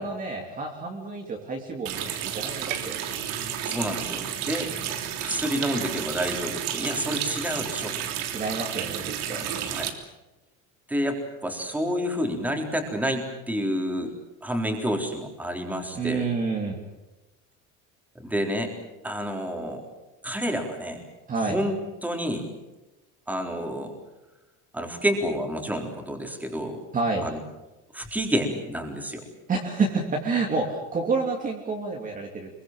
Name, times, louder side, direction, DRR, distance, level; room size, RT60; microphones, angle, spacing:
voice 1, 0.0-3.1 8.3-9.7 15.9-16.8 21.3-21.6 26.9-27.3 29.5-32.6, right 4 dB, 25° right, 0 dB, 3.0 m, -29 dB
Water tap faucet, 1.8-9.9, right 9 dB, 90° right, 3.4 m, -31 dB
voice 2, 3.6-4.7 5.2-8.0 9.7-9.9 10.9-14.1 14.4-16.3 18.2-19.8 20.2-21.0 21.5-21.7 22.0-22.4 23.3-23.9 24.7-26.8 27.2-27.4 27.9-29.2, equal, 5° right, 3 dB, 3.9 m, -29 dB
25.5 x 23.5 x 7.5 m, 1.0 s
cardioid pair, 165°, 33 cm